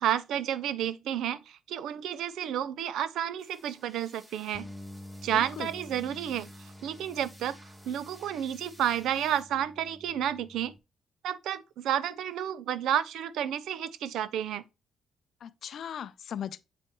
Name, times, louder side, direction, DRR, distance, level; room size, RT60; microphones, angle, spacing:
voice 1, 0.0-4.7 5.2-7.6 7.8-10.7 11.2-14.6, right 10 dB, 80° right, 0.5 m, -31 dB
sound 1, 3.4-9.4, right 1 dB, 20° right, 1.3 m, -56 dB
Bass guitar, 4.5-10.8, left 1 dB, 10° left, 0.6 m, -48 dB
voice 2, 5.3-5.7 15.4-16.6, left 9 dB, 60° left, 0.4 m, -38 dB
7.8 x 4.4 x 3.0 m
cardioid pair, 90°, 0 cm